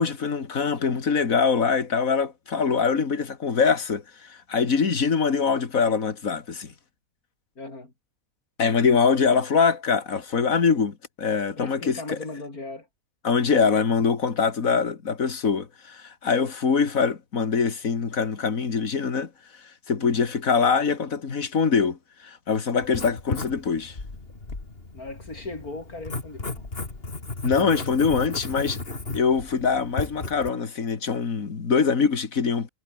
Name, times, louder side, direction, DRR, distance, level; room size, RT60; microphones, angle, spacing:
voice 1, 0.0-6.7 8.6-12.2 13.2-19.3 19.9-24.0 27.4-28.8 29.1-32.7, left 5 dB, 65° left, 2.5 m, -23 dB
voice 2, 7.6-7.9 11.6-12.9 20.0-20.2 24.9-26.7, left 2 dB, 85° left, 5.8 m, -38 dB
Writing, 22.8-30.5, left 3 dB, 40° left, 3.1 m, -35 dB
omnidirectional pair, 1.5 m